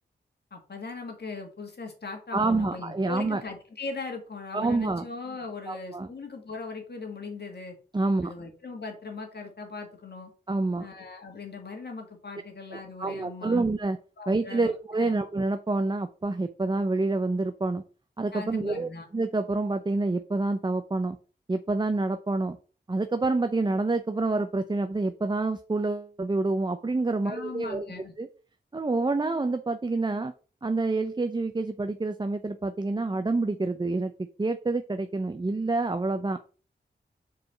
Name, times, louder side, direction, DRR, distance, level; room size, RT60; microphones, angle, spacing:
voice 1, 0.5-7.8 8.2-10.3 10.8-13.6 14.2-15.1 18.3-19.1 27.3-28.1, left 4 dB, 60° left, 3 dB, 2.1 m, -39 dB
voice 2, 2.3-3.4 4.5-5.1 5.7-6.1 7.9-8.3 10.5-10.9 12.7-14.0 14.3-17.8 18.2-21.2 21.5-22.6 22.9-27.8 28.2-28.3 28.7-30.3 30.6-36.4, right 3 dB, 25° right, 9 dB, 0.6 m, -27 dB
4.8 x 4.7 x 6.0 m, 0.38 s
cardioid pair, 50°, 19 cm